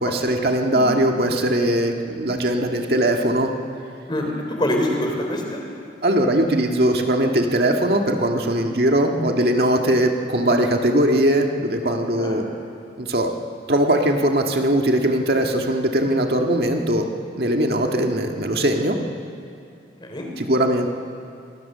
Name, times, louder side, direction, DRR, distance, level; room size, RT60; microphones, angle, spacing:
voice 1, 0.0-3.5 6.0-12.5 13.0-13.3 13.7-17.1 17.4-19.0 20.4-20.9, right 1 dB, 60° right, 2 dB, 1.8 m, -20 dB
voice 2, 4.1-5.6 12.2-12.4 20.0-20.3, left 1 dB, 25° left, 1 dB, 3.7 m, -25 dB
26.5 x 20.0 x 6.8 m, 2.5 s
head